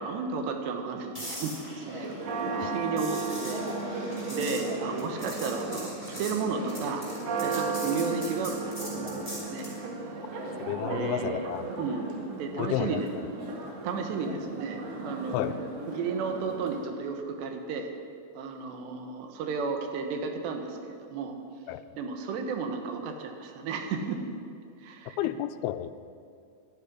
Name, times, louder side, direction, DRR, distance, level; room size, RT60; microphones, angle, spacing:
voice 1, 0.0-2.1 2.4-3.7 4.3-7.0 7.4-9.7 10.9-11.5 11.8-13.1 13.8-15.5 15.9-17.9 18.4-21.4 22.0-24.2 24.8-25.2, right 5 dB, 85° right, 5 dB, 3.5 m, -33 dB
sound 1, 1.1-9.8 14.0-14.2, equal, 5° right, 3.7 m, -42 dB
Church bell, 1.8-16.8, right 3 dB, 60° right, 3.4 m, -35 dB
voice 2, 10.7-11.8 12.6-13.0 15.3-15.5 21.7-21.8 25.2-26.0, left 12 dB, 80° left, 10 dB, 2.4 m, -31 dB
11.5 x 11.0 x 9.9 m, 2.3 s
omnidirectional pair, 4.8 m